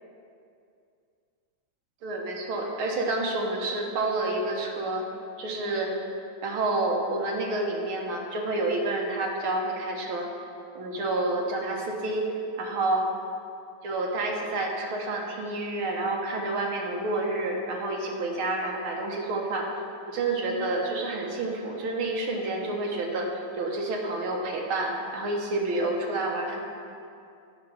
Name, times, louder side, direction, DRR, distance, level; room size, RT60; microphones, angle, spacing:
voice 1, 2.0-5.1 5.4-5.9 6.4-10.3 10.8-12.3 12.6-13.0 13.8-19.7 20.1-23.3 23.5-26.6, right 2 dB, 75° right, 0 dB, 2.0 m, -29 dB
9.6 x 5.5 x 7.2 m, 2.5 s
omnidirectional pair, 2.4 m